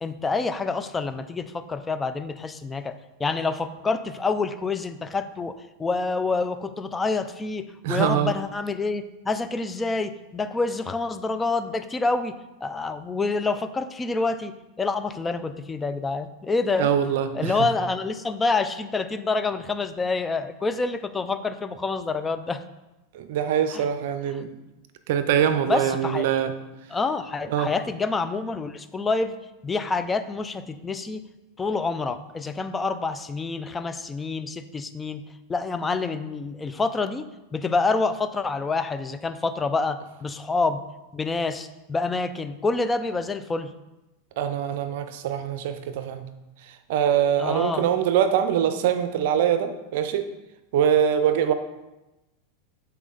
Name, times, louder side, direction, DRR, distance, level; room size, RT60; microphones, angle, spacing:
voice 1, 0.0-16.9 17.3-22.6 23.7-23.9 25.7-26.3 26.9-29.4 29.6-31.2 31.6-35.2 35.5-40.8 41.1-43.7 47.4-47.9, left 3 dB, 15° left, 10 dB, 0.4 m, -27 dB
voice 2, 7.8-8.3 16.8-17.7 23.1-24.5 25.1-26.5 27.5-27.7 44.4-46.3 46.7-50.3 50.7-51.5, right 9 dB, 70° right, 10 dB, 0.5 m, -23 dB
8.2 x 4.3 x 3.9 m, 1.0 s
hypercardioid pair, 120°, 0 cm